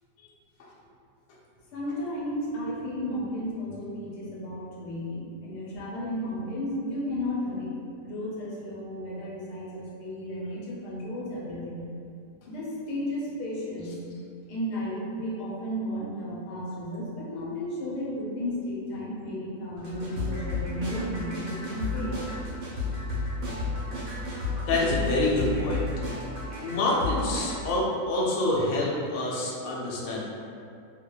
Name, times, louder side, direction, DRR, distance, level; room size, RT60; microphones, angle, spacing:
voice 1, 1.7-7.7 8.0-11.8 12.5-13.9 14.5-22.2, equal, 90° left, -5 dB, 1.2 m, -33 dB
sound 1, 19.8-27.6, left 3 dB, 75° right, 1.1 m, -32 dB
voice 2, 24.7-25.9 26.6-30.2, left 1 dB, 70° left, -4 dB, 1.0 m, -26 dB
2.7 x 2.1 x 2.2 m, 2.4 s
omnidirectional pair, 1.7 m